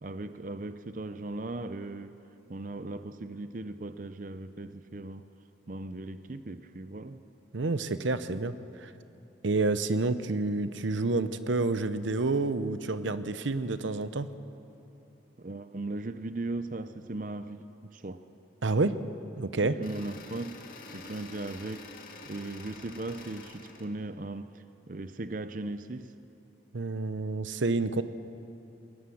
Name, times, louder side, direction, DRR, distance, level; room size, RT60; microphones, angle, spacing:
voice 1, 0.0-2.2 2.5-5.2 5.7-7.2 15.4-18.2 19.6-20.6 20.9-21.9 22.3-26.1, right 2 dB, 45° right, 11 dB, 0.6 m, -38 dB
voice 2, 7.5-8.5 8.8-8.9 9.4-14.3 18.6-18.9 19.4-19.8 26.7-28.0, right 3 dB, 85° right, 12 dB, 0.8 m, -29 dB
sound 1, 19.8-23.9, left 3 dB, 50° left, 1.9 m, -47 dB
22.5 x 19.0 x 7.1 m, 2.8 s
head